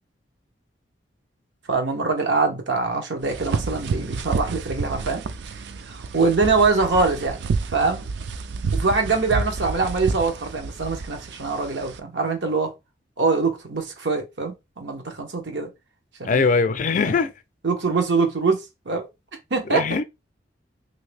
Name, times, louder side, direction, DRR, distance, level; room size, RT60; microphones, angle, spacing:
voice 1, 1.7-5.2 5.9-7.4 7.7-8.1 8.7-12.7 13.2-15.7 16.2-16.5 17.1-17.2 17.6-19.1 19.5-19.8, right 4 dB, 90° right, 0.9 m, -23 dB
sound 1, 3.2-12.0, right 4 dB, 70° right, 0.3 m, -30 dB
voice 2, 16.2-17.3 19.7-20.0, left 4 dB, 45° left, 0.4 m, -21 dB
3.0 x 2.7 x 3.3 m
head